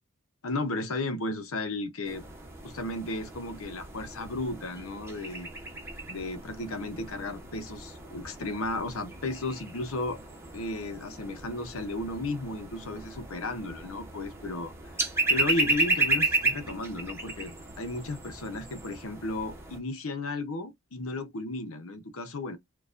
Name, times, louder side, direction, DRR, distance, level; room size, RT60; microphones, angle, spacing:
voice 1, 0.4-2.2 2.6-5.5 6.1-10.2 10.5-22.6, left 2 dB, 65° left, 0.8 m, -34 dB
sound 1, 2.0-19.8, right 2 dB, 10° right, 0.9 m, -34 dB
4.6 x 2.3 x 2.5 m
head